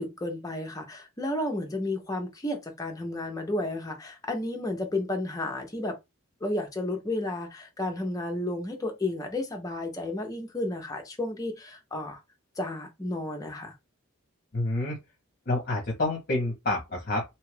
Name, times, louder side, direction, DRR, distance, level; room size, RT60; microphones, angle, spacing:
voice 1, 0.0-6.0 6.4-12.2 12.6-13.7, left 1 dB, 15° left, 0.6 m, -32 dB
voice 2, 14.5-15.0 15.5-17.2, left 2 dB, 45° left, 0.8 m, -28 dB
2.8 x 2.3 x 3.2 m
head